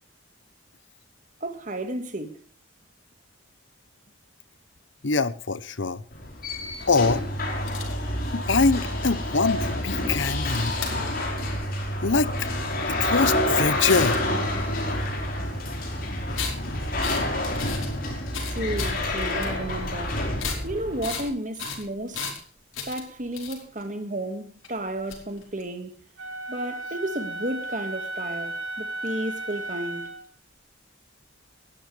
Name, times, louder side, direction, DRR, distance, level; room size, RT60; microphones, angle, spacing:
voice 1, 1.4-2.4 18.5-20.2 20.6-22.3 22.9-25.9 26.5-30.1, right 1 dB, 40° right, 2.0 m, -32 dB
voice 2, 5.0-6.0 6.9-7.2 8.3-10.8 12.0-12.5 12.9-14.2, left 4 dB, 65° left, 0.9 m, -24 dB
sound 1, 6.1-21.3, left 1 dB, 45° left, 4.7 m, -28 dB
sound 2, 7.7-7.9 10.5-10.9 13.8-14.4 16.4-16.5 17.0-17.3 17.5-17.9 18.2-19.5 20.4-20.7 21.0-21.3 21.5-22.4 22.7-23.8 24.6-24.7 25.0-25.6, left 6 dB, 90° left, 5.3 m, -34 dB
Wind instrument woodwind instrument, 26.2-30.3, right 2 dB, 75° right, 5.9 m, -34 dB
20.5 x 12.5 x 3.4 m
head